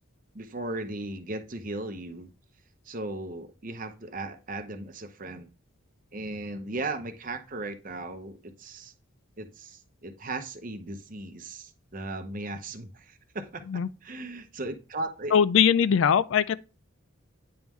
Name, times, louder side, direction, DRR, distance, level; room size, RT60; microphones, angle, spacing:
voice 1, 0.3-2.3 2.9-5.5 6.1-8.9 9.4-13.6 14.0-15.3, right 2 dB, 40° right, 0.7 m, -37 dB
voice 2, 15.3-16.6, left 7 dB, 65° left, 0.3 m, -21 dB
9.5 x 3.6 x 3.0 m
head